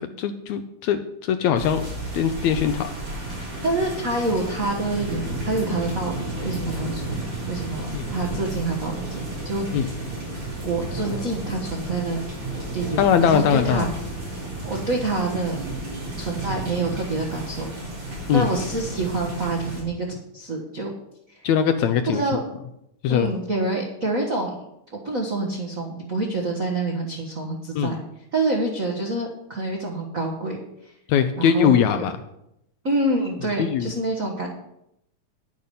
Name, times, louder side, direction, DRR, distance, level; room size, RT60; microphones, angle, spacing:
voice 1, 0.2-1.8 2.1-2.9 7.9-8.1 9.7-9.9 13.0-13.9 18.3-18.5 21.4-22.4 23.0-23.3 27.8-28.0 31.1-32.2 33.6-33.9, left 8 dB, 80° left, 9 dB, 1.7 m, -21 dB
sound 1, 1.6-19.8, right 1 dB, 40° right, 5.2 m, -32 dB
voice 2, 3.6-10.0 10.6-12.2 12.7-13.9 14.6-15.6 16.2-17.7 18.3-20.1 20.3-20.9 21.3-21.5 22.1-22.4 23.1-24.5 24.9-28.0 28.3-30.6 31.4-32.0 32.8-34.5, right 2 dB, 70° right, -1 dB, 0.7 m, -27 dB
10.5 x 8.7 x 5.4 m, 0.81 s
omnidirectional pair, 3.7 m